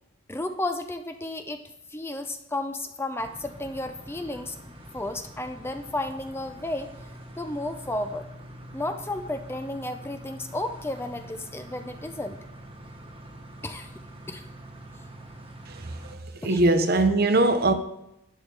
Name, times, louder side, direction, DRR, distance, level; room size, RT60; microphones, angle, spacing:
voice 1, 0.3-1.6 1.9-4.6 4.9-6.9 7.4-8.3 8.7-12.4 13.6-13.9 14.3-14.4 16.4-16.6, left 2 dB, 10° left, 7 dB, 0.5 m, -33 dB
sound 1, 3.2-16.1, right 1 dB, 30° right, 1.3 m, -45 dB
voice 2, 16.2-17.7, right 2 dB, 50° right, 8 dB, 0.9 m, -21 dB
11.5 x 8.0 x 3.4 m, 0.83 s
head